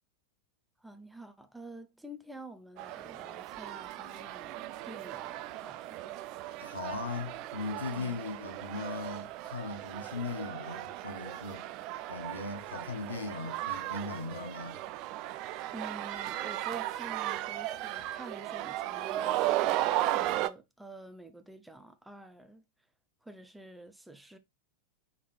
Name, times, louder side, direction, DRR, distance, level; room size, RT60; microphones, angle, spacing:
voice 1, 0.8-6.2 15.7-22.6 23.2-24.4, right 1 dB, 5° right, 0.6 m, -49 dB
sound 1, 2.8-20.5, right 15 dB, 40° right, 0.3 m, -36 dB
voice 2, 6.6-11.7 12.1-14.8, left 3 dB, 75° left, 1.0 m, -38 dB
5.1 x 3.3 x 3.1 m
figure-of-eight pair, 90°, 0 cm